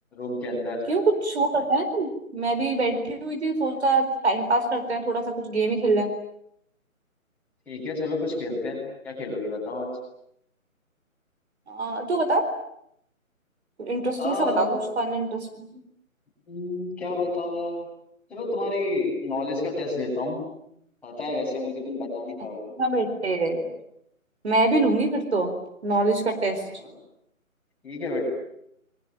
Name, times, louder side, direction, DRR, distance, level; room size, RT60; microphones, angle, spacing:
voice 1, 0.1-0.8 7.7-9.9 14.2-14.8 16.5-17.8 18.3-20.5 21.0-22.6 26.5-26.9 27.8-28.2, left 2 dB, 5° left, -7 dB, 7.7 m, -30 dB
voice 2, 0.9-6.1 11.7-12.5 13.8-15.7 22.8-23.7 24.4-25.5 25.8-26.6, right 2 dB, 50° right, 6 dB, 4.4 m, -24 dB
28.5 x 23.0 x 9.1 m, 0.75 s
hypercardioid pair, 170°, 42 cm